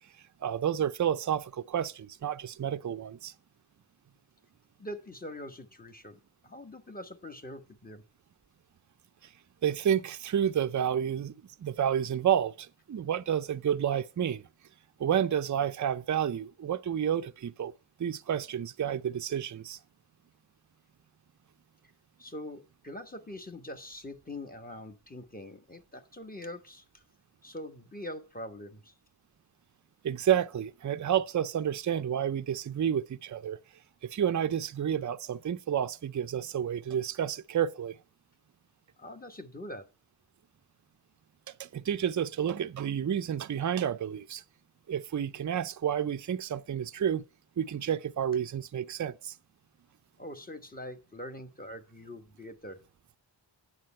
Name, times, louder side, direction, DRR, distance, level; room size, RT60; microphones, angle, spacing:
voice 1, 0.4-3.3 9.6-11.3 11.6-14.4 15.0-17.7 18.0-19.8 30.0-33.6 34.0-38.0 41.6-44.4 44.9-47.2 47.6-49.3, right 9 dB, 40° right, 0.5 m, -30 dB
voice 2, 4.8-8.0 22.2-27.0 27.4-28.9 39.0-39.9 50.2-52.8, left 1 dB, 20° left, 1.2 m, -43 dB
9.5 x 7.4 x 4.3 m
wide cardioid pair, 65°, 45 cm